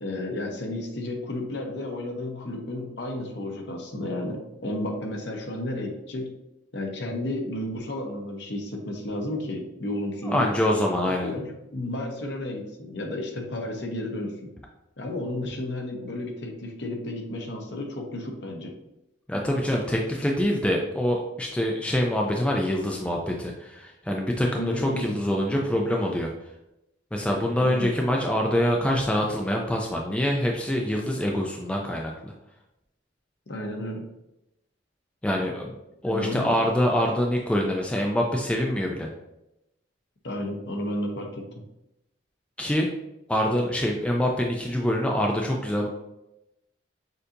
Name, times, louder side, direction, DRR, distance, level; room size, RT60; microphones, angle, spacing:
voice 1, 0.0-6.3 6.7-10.5 11.0-14.5 15.0-18.7 24.6-25.2 27.6-27.9 33.5-34.1 36.0-36.6 40.2-41.6, left 1 dB, 60° left, 2 dB, 0.8 m, -32 dB
voice 2, 10.2-11.3 19.3-26.3 27.1-32.3 35.2-35.7 36.0-39.1 42.6-42.9 43.3-45.9, equal, 5° left, 0 dB, 0.3 m, -25 dB
6.6 x 2.7 x 2.6 m, 0.90 s
head